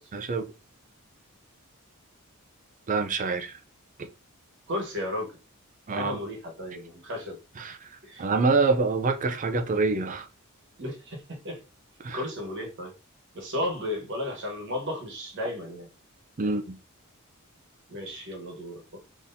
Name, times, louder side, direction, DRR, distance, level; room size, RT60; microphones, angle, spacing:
voice 1, 0.1-0.5 2.9-3.6 4.0-4.1 5.9-6.2 7.6-7.9 8.2-10.3 12.0-12.2 16.4-16.8, right 3 dB, 35° right, 0.5 m, -26 dB
voice 2, 4.7-5.4 5.9-7.4 8.0-8.3 10.8-11.6 12.1-12.9 13.3-15.9 16.4-16.5 17.9-19.0, left 1 dB, 55° right, 1.2 m, -34 dB
4.0 x 3.0 x 2.6 m
head